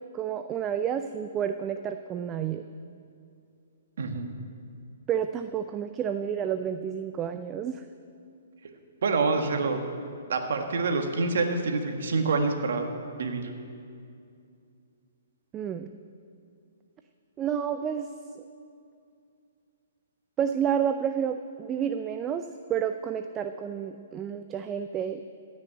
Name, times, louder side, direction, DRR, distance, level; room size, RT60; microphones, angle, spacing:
voice 1, 0.0-2.6 5.1-7.8 15.5-15.9 17.4-18.4 20.4-22.4 22.7-25.2, right 8 dB, 25° right, 8 dB, 0.5 m, -30 dB
voice 2, 4.0-4.4 9.0-9.8 10.3-12.9 13.2-13.5, right 4 dB, 65° right, 5 dB, 1.7 m, -26 dB
16.0 x 6.4 x 8.7 m, 2.4 s
hypercardioid pair, 130°, 0 cm